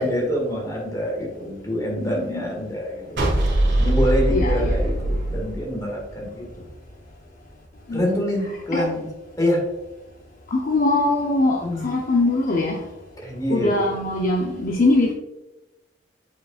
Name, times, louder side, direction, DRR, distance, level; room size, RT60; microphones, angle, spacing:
voice 1, 0.0-3.2 3.8-6.4 7.9-9.1 9.4-9.6 11.6-11.9 13.2-13.8, equal, 20° left, -1 dB, 1.9 m, -26 dB
voice 2, 2.0-2.4 4.3-4.8 7.9-8.0 8.7-8.9 10.5-12.8 13.5-15.1, left 2 dB, 45° left, 0 dB, 0.7 m, -22 dB
sound 1, 3.2-6.4, right 1 dB, 65° right, 1.9 m, -21 dB
7.9 x 5.2 x 2.4 m, 1.0 s
head